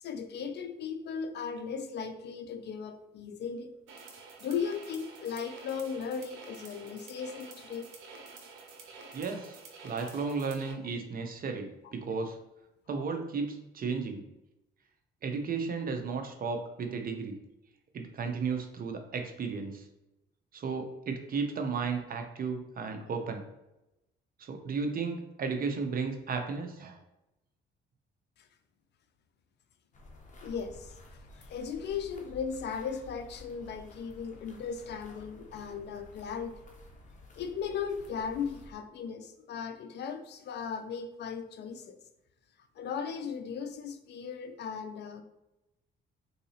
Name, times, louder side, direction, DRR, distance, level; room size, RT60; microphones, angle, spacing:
voice 1, 0.0-3.7 4.4-7.9 11.8-11.9 28.4-28.5 30.4-36.7 37.4-42.0 42.8-45.2, left 6 dB, 60° left, 8 dB, 0.4 m, -37 dB
sound 1, 3.9-10.7, right 4 dB, 85° right, 0.7 m, -49 dB
voice 2, 9.1-9.6 9.8-12.4 12.9-14.2 15.2-17.4 17.9-19.9 20.5-23.4 24.4-27.0, right 5 dB, 45° right, 5 dB, 0.6 m, -34 dB
sound 2, 29.9-38.7, left 2 dB, 40° left, 0.8 m, -52 dB
3.8 x 2.7 x 2.8 m, 0.93 s
cardioid pair, 90°, 20 cm